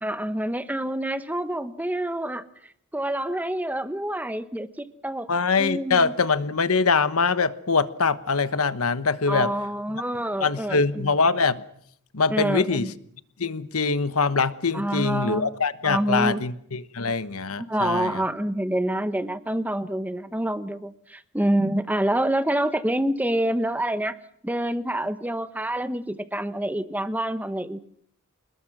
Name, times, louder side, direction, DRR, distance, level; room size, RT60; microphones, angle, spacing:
voice 1, 0.0-5.3 5.6-6.1 9.3-11.1 12.3-12.9 14.7-15.5 15.8-16.4 17.6-24.1 24.4-27.8, right 1 dB, 5° right, 1.1 m, -27 dB
voice 2, 5.3-9.5 10.4-11.6 12.1-12.9 13.4-18.2, left 4 dB, 80° left, 1.2 m, -23 dB
27.0 x 21.0 x 6.1 m
head